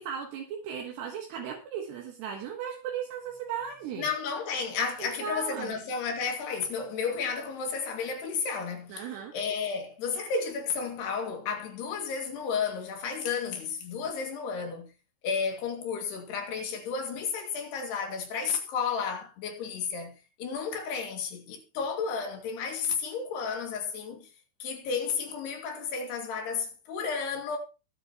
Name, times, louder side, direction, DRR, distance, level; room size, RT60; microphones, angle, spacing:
voice 1, 0.0-4.1 5.0-5.7 8.9-9.3, right 7 dB, 75° right, 3.6 m, -36 dB
voice 2, 4.0-9.0 9.3-14.9 15.2-24.3 24.6-27.6, left 5 dB, 75° left, 4.2 m, -32 dB
22.0 x 8.2 x 3.0 m
omnidirectional pair, 4.9 m